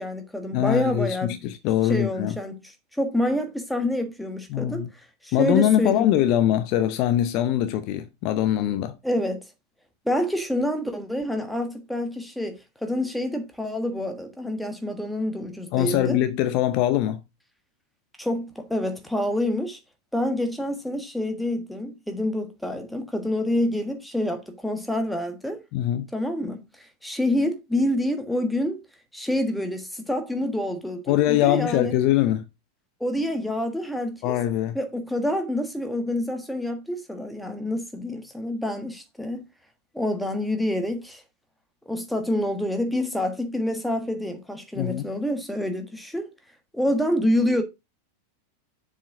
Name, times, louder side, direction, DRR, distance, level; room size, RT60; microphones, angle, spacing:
voice 1, 0.0-1.3 1.8-6.1 9.0-9.4 10.0-16.2 18.2-19.8 20.1-25.6 26.1-28.8 29.1-31.9 33.0-34.3 34.7-39.5 39.9-41.2 41.8-46.3 46.7-47.6, left 1 dB, ahead, 1.5 m, -27 dB
voice 2, 0.5-2.4 4.5-4.9 5.3-8.9 15.7-17.2 25.7-26.1 31.1-32.4 34.2-34.8 44.8-45.1, left 12 dB, 40° left, 0.7 m, -22 dB
7.0 x 5.1 x 4.8 m
figure-of-eight pair, 90°, 0 cm